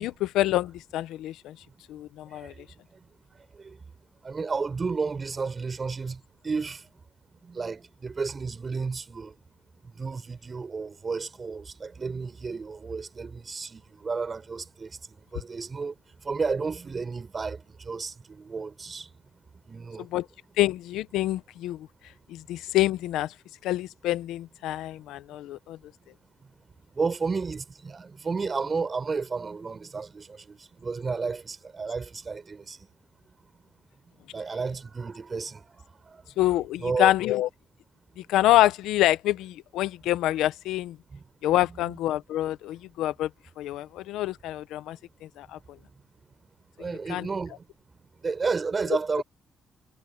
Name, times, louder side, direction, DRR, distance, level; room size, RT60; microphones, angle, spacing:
voice 1, 0.0-1.6 1.9-2.5 20.0-20.3 20.6-21.9 22.3-23.3 23.6-25.8 36.4-37.5 38.2-41.0 41.4-43.3 43.6-45.0 45.4-45.6 47.1-47.3, left 15 dB, 90° left, 0.8 m, -26 dB
voice 2, 4.2-6.8 7.4-9.3 10.0-14.9 15.3-15.9 16.2-19.1 19.7-20.0 26.9-32.8 34.3-35.6 36.1-36.2 36.8-37.1 41.1-41.2 41.8-42.0 46.8-47.6 48.2-49.2, right 4 dB, 35° right, 6.7 m, -32 dB
cardioid pair, 90°, 0 cm